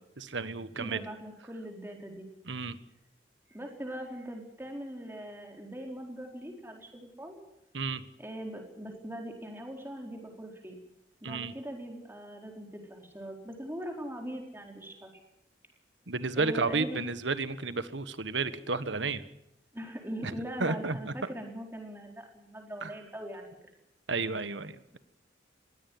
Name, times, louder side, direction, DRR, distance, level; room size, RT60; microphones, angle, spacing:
voice 1, 0.2-1.0 2.4-2.8 7.7-8.0 11.2-11.5 16.1-19.2 20.2-20.3 20.6-21.1 22.8-22.9 24.1-25.0, right 3 dB, 75° right, 13 dB, 1.4 m, -32 dB
voice 2, 0.7-2.3 3.5-7.4 8.2-10.8 11.2-15.1 16.4-17.0 19.7-23.5, right 1 dB, 10° right, 2 dB, 4.4 m, -41 dB
21.5 x 16.5 x 9.5 m, 0.83 s
head